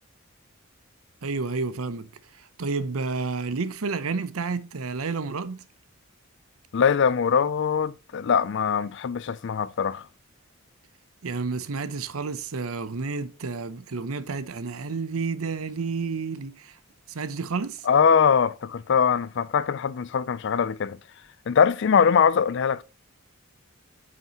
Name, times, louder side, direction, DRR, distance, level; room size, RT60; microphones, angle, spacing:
voice 1, 1.2-5.6 11.2-16.8 17.1-17.9, right 4 dB, 80° right, 0.7 m, -30 dB
voice 2, 6.7-10.1 17.9-21.0 21.5-22.8, left 6 dB, 55° left, 0.4 m, -22 dB
9.1 x 5.8 x 2.9 m
head